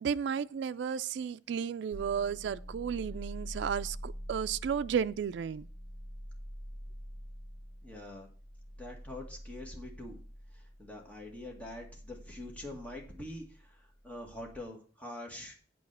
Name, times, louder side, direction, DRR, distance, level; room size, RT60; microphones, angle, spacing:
voice 1, 0.0-5.7, right 7 dB, 70° right, 0.3 m, -33 dB
sound 1, 1.9-14.6, equal, 30° left, 3.3 m, -46 dB
voice 2, 7.8-8.3 8.8-10.2 10.5-15.6, left 1 dB, 10° left, 1.9 m, -45 dB
8.6 x 4.8 x 6.7 m
head